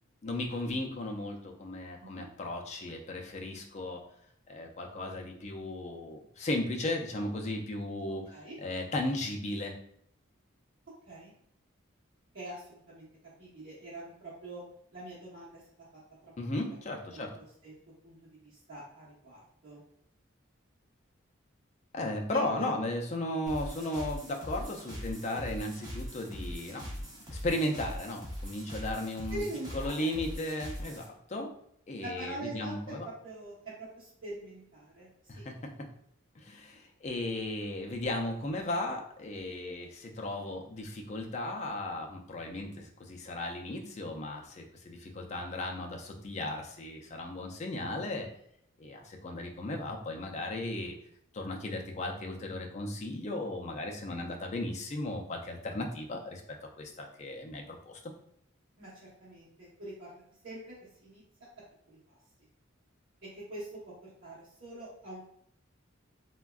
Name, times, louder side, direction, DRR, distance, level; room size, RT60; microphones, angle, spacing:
voice 1, 0.2-4.0 4.5-9.8 16.4-17.3 21.9-26.9 27.3-29.4 29.7-31.5 31.9-33.1 35.3-35.9 36.4-48.3 48.8-51.0 51.3-56.4 56.8-58.0, left 1 dB, 35° left, 1 dB, 0.4 m, -36 dB
voice 2, 12.3-13.1 13.4-14.6 14.9-15.6 17.1-17.2 17.6-17.7 18.0-18.2 18.4-19.8 22.3-22.7 29.3-30.2 32.0-35.1 35.3-35.4 58.8-60.1 60.4-60.7 61.0-61.2 61.9-62.0 63.2-63.7 64.0-65.2, right 1 dB, 65° right, -10 dB, 0.9 m, -43 dB
sound 1, 23.5-31.0, equal, 20° right, 0.6 m, -41 dB
3.4 x 2.2 x 2.3 m, 0.69 s
head